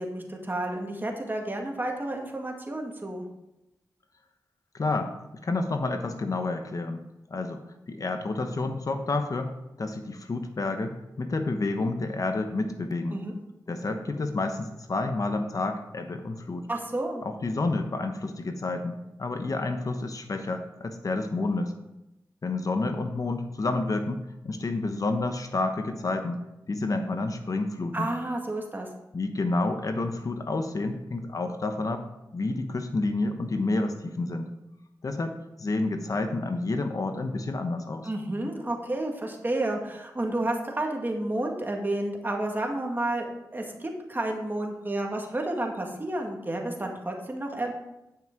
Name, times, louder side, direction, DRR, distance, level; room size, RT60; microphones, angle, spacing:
voice 1, 0.0-3.3 13.1-13.4 16.7-17.2 27.9-28.9 38.0-43.3 43.5-47.7, right 1 dB, 25° right, 1 dB, 2.0 m, -31 dB
voice 2, 4.7-5.1 5.4-7.0 7.3-7.6 7.9-9.5 9.8-13.2 13.7-16.7 17.2-21.7 22.4-26.4 26.7-28.1 29.1-32.0 32.3-34.5 35.0-38.1, left 2 dB, 50° left, 6 dB, 1.0 m, -29 dB
10.0 x 6.0 x 4.6 m, 0.92 s
cardioid pair, 50°, 7 cm